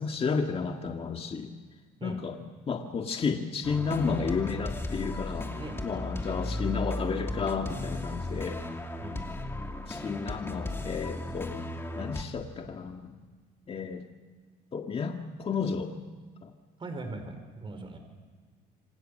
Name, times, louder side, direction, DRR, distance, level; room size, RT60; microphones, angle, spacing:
voice 1, 0.0-1.5 2.0-2.4 2.7-5.5 5.8-8.6 9.9-11.5 12.0-13.2 13.7-14.0 14.7-15.9 16.4-16.5, left 5 dB, 35° left, 3 dB, 1.8 m, -32 dB
sound 1, 3.6-12.2, left 2 dB, 15° left, 2.7 m, -35 dB
voice 2, 5.6-6.3 9.0-9.2 16.8-18.0, right 2 dB, 30° right, 6 dB, 5.0 m, -40 dB
28.0 x 25.5 x 6.7 m, 1.5 s
cardioid pair, 110°, 17 cm